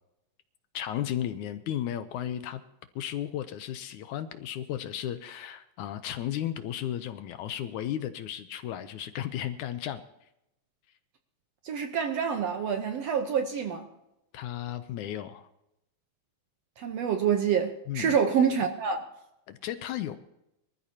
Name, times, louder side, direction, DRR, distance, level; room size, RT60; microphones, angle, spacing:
voice 1, 0.7-2.6 3.0-10.0 14.3-15.5 17.9-18.2 19.5-20.2, left 11 dB, 75° left, 2.0 m, -34 dB
voice 2, 11.6-13.9 16.8-19.0, right 7 dB, 70° right, 1.7 m, -27 dB
24.0 x 13.5 x 2.8 m
omnidirectional pair, 3.8 m